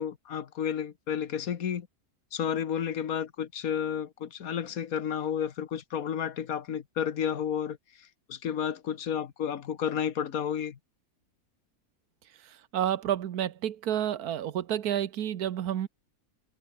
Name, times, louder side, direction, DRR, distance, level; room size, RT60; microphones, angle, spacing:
voice 1, 0.0-1.9 2.3-7.8 8.3-10.8, left 8 dB, 75° left, 1.7 m, -31 dB
voice 2, 12.3-15.9, right 10 dB, 90° right, 1.5 m, -30 dB
omnidirectional pair, 1.6 m